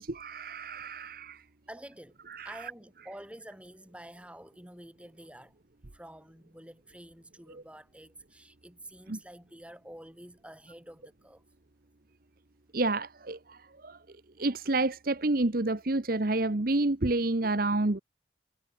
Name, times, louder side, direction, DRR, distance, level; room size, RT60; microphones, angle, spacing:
voice 1, 0.0-1.4 2.3-2.5 9.1-9.2 12.7-13.6 13.8-14.0 14.4-18.0, right 2 dB, 50° right, 1.1 m, -29 dB
voice 2, 1.7-2.2 2.4-5.5 5.9-11.4, right 1 dB, 5° right, 5.8 m, -48 dB
head